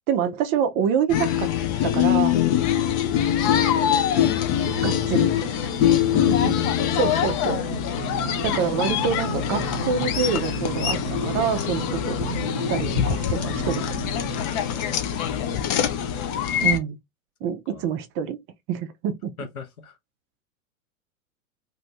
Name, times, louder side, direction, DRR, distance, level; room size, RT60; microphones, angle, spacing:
voice 1, 0.1-1.5 1.8-2.4 4.8-5.3 6.3-6.6 6.9-7.6 8.4-12.2 12.7-13.8 16.6-17.0 17.4-18.4 18.7-19.3, right 7 dB, 30° right, 0.5 m, -26 dB
sound 1, 1.1-16.8, left 10 dB, 35° left, 0.6 m, -23 dB
sound 2, 4.5-14.5, right 10 dB, 90° right, 0.6 m, -36 dB
voice 2, 14.5-15.4 17.4-17.9 19.4-20.0, left 6 dB, 85° left, 0.9 m, -42 dB
2.7 x 2.5 x 3.2 m
figure-of-eight pair, 95°, 42 cm